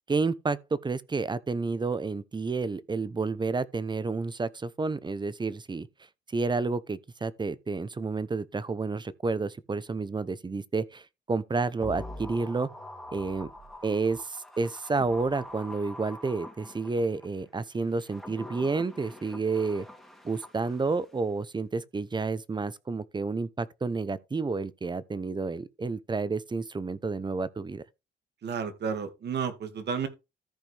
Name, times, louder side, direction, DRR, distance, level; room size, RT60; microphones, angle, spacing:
voice 1, 0.1-5.9 6.3-12.7 13.1-13.5 13.8-19.9 20.2-27.8, right 4 dB, 20° right, 0.8 m, -30 dB
sound 1, 11.8-17.3 17.9-21.1 21.4-21.5, left 2 dB, ahead, 2.5 m, -44 dB
voice 2, 28.4-30.1, right 6 dB, 60° right, 2.1 m, -32 dB
14.0 x 5.0 x 3.4 m
cardioid pair, 90°, 20 cm